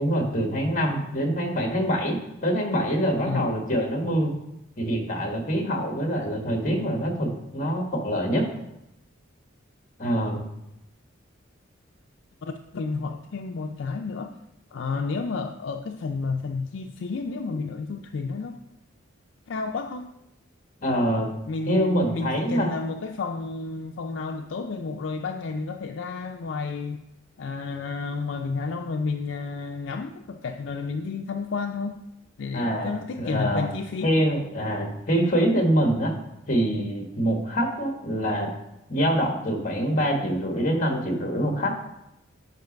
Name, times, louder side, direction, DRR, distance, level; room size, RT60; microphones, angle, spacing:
voice 1, 0.0-4.3 4.8-8.4 10.0-10.4 20.8-21.3 21.6-22.7 32.5-33.7 34.0-36.1 36.5-38.5 38.9-41.8, equal, 45° left, 2 dB, 1.6 m, -25 dB
voice 2, 3.2-3.5 12.4-14.3 14.7-18.5 19.5-20.1 21.4-27.0 27.4-32.0 32.4-34.1, left 4 dB, 70° left, 5 dB, 0.5 m, -31 dB
8.1 x 5.2 x 5.2 m, 0.87 s
head